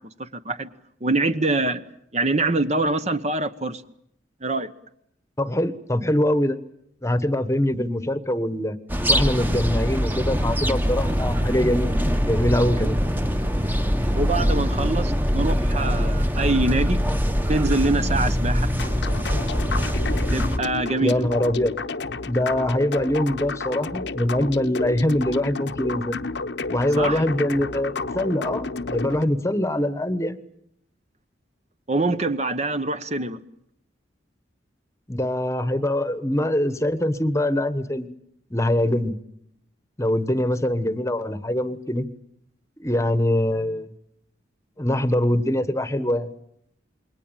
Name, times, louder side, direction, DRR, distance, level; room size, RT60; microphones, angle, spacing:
voice 1, 0.2-0.7 1.0-1.8 2.1-3.8 4.4-4.7 14.1-17.0 17.5-18.7 20.3-21.2 27.0-27.2 31.9-33.4, right 2 dB, 35° right, 11 dB, 1.1 m, -24 dB
voice 2, 5.4-6.6 7.0-8.8 9.1-11.9 12.2-13.0 21.0-21.7 22.2-26.2 26.7-30.4 35.1-38.1 38.5-39.1 40.0-42.1 42.8-43.9 44.8-46.3, left 1 dB, 15° left, 12 dB, 1.2 m, -23 dB
sound 1, 8.9-20.6, equal, 10° right, 1.2 m, -23 dB
sound 2, 18.8-29.3, left 3 dB, 65° left, 1.0 m, -31 dB
28.0 x 22.0 x 9.0 m, 0.74 s
head